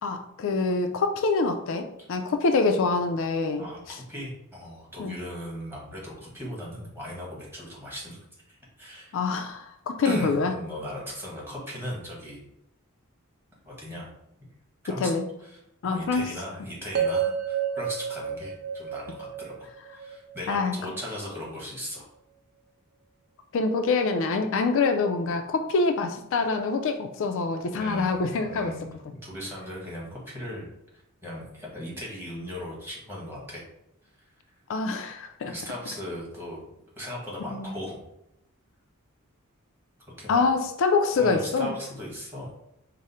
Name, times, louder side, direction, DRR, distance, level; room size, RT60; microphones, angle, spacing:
voice 1, 0.0-4.0 5.0-5.2 9.1-10.5 15.0-15.3 15.8-16.3 20.5-20.7 23.5-28.7 34.7-35.5 37.5-37.7 40.3-41.7, left 4 dB, 65° left, 6 dB, 0.4 m, -25 dB
voice 2, 3.6-8.2 8.5-9.2 10.0-12.4 13.6-14.1 14.8-15.1 15.4-15.5 15.8-22.1 27.7-30.7 31.2-33.6 35.5-36.7 37.0-38.0 40.2-40.4 41.1-42.5, equal, 10° right, -5 dB, 1.5 m, -38 dB
sound 1, 16.9-21.1, right 7 dB, 50° right, 0.4 m, -30 dB
4.8 x 2.0 x 4.2 m, 0.84 s
head